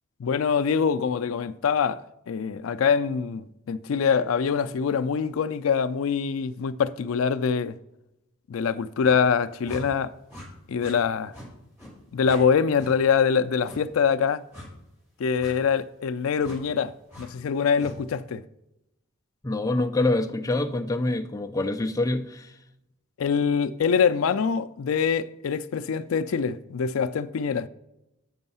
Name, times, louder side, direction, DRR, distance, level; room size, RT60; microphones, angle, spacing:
voice 1, 0.2-2.0 2.3-7.8 8.5-10.1 10.7-11.3 12.1-14.4 15.2-18.4 23.2-27.7, left 6 dB, 75° left, 0.4 m, -24 dB
sound 1, 9.0-9.2 9.6-9.8 10.3-10.5 10.8-11.0 11.3-11.5 11.8-11.9 12.2-12.4 12.8-12.9 13.6-13.8 14.5-14.7 15.4-15.5 16.4-16.6 17.1-17.3 17.8-18.0, left 1 dB, 10° right, 3.0 m, -42 dB
voice 2, 19.4-22.6, left 2 dB, 15° left, 0.4 m, -26 dB
8.0 x 5.4 x 5.5 m
head